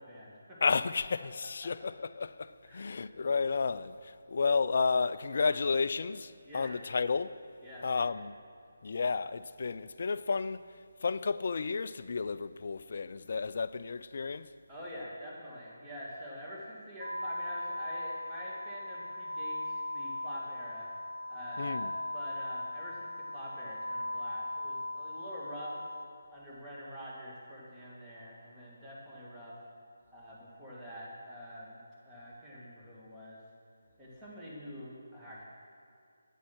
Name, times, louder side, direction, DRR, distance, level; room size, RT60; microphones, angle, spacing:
voice 1, 0.0-0.6 2.6-2.9 6.4-6.8 7.6-8.0 14.7-20.9 21.3-25.8 26.3-29.6 30.1-33.4 34.0-35.4, equal, 5° right, 2.1 m, -46 dB
voice 2, 0.6-7.4 7.8-8.3 8.8-10.6 11.0-14.5 21.6-21.9, left 4 dB, 45° left, 0.3 m, -32 dB
sound 1, 17.0-26.0, left 1 dB, 85° right, 0.8 m, -38 dB
9.9 x 8.3 x 6.2 m
figure-of-eight pair, 150°, 0 cm